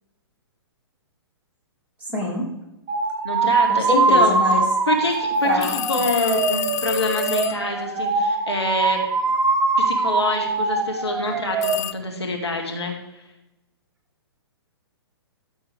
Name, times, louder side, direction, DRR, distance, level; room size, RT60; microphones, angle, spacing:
voice 1, 2.0-2.5 3.7-4.6 5.4-6.0 11.3-11.4, left 1 dB, 10° right, -5 dB, 3.1 m, -26 dB
sound 1, 2.9-11.8, right 4 dB, 25° right, 1.0 m, -22 dB
voice 2, 3.2-4.4 4.9-9.0 9.8-12.9, left 3 dB, 75° left, 1 dB, 2.2 m, -26 dB
sound 2, 5.6-7.7 11.6-11.9, left 13 dB, 40° left, 0.3 m, -29 dB
13.5 x 7.2 x 3.4 m, 0.94 s
figure-of-eight pair, 115°, 14 cm